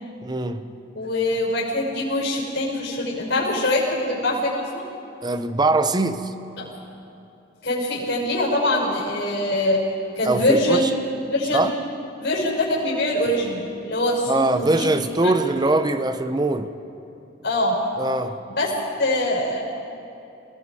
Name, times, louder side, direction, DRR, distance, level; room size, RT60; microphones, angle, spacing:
voice 1, 0.2-0.6 5.2-6.3 10.2-10.9 11.5-11.7 14.3-16.7 18.0-18.4, right 2 dB, 20° right, 0.8 m, -22 dB
voice 2, 0.9-4.8 6.6-6.7 7.6-9.8 10.1-10.9 11.3-11.7 12.2-14.9 15.2-15.3 17.4-17.8 18.5-18.7 19.0-19.6, left 1 dB, 65° left, 5.9 m, -23 dB
27.0 x 20.0 x 4.9 m
head